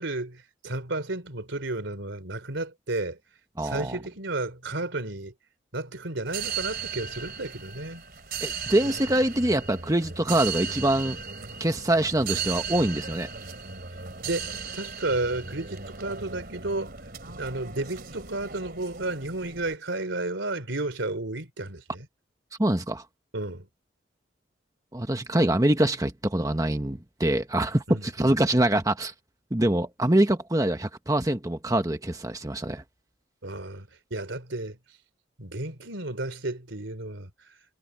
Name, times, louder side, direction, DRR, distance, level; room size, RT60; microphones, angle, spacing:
voice 1, 0.0-3.2 3.6-5.3 5.7-8.0 14.2-16.9 17.3-22.1 23.3-23.7 27.9-28.4 33.4-34.8 35.4-37.3, right 2 dB, 85° right, 3.4 m, -32 dB
voice 2, 3.6-4.0 8.4-11.2 11.6-13.3 22.6-23.0 24.9-29.1 29.5-32.8, right 1 dB, 20° right, 1.2 m, -24 dB
sound 1, 6.3-19.7, right 6 dB, 55° right, 3.1 m, -37 dB
head